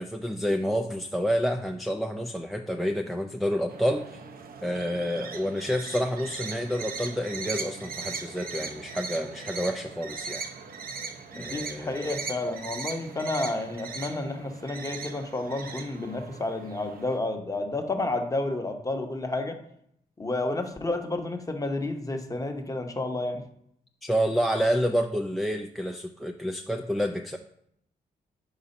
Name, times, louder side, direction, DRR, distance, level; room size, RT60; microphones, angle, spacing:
voice 1, 0.0-4.1 4.6-10.5 11.4-12.0 24.0-27.4, equal, ahead, 5 dB, 0.3 m, -29 dB
sound 1, 3.7-17.2, right 5 dB, 60° right, 0.6 m, -39 dB
voice 2, 11.3-19.6 20.2-23.4, left 2 dB, 20° left, 5 dB, 0.8 m, -31 dB
4.7 x 4.0 x 5.3 m, 0.72 s
cardioid pair, 95°, 17 cm